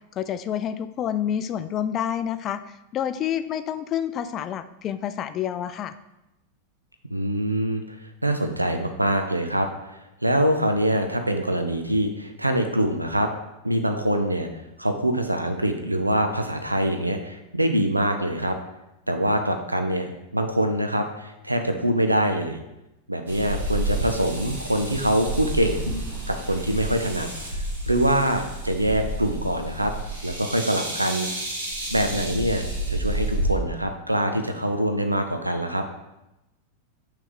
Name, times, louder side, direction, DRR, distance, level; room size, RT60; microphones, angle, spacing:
voice 1, 0.2-5.9, left 9 dB, 30° left, 12 dB, 0.3 m, -28 dB
voice 2, 7.1-13.3 13.6-14.5 14.8-18.6 19.1-22.6 23.1-25.8 26.3-29.9 30.2-31.3 31.9-35.8, right 1 dB, 85° right, 6 dB, 0.5 m, -24 dB
sound 1, 23.3-33.5, right 1 dB, 70° right, 1.6 m, -30 dB
6.1 x 3.3 x 5.0 m, 0.94 s
figure-of-eight pair, 90°, 0 cm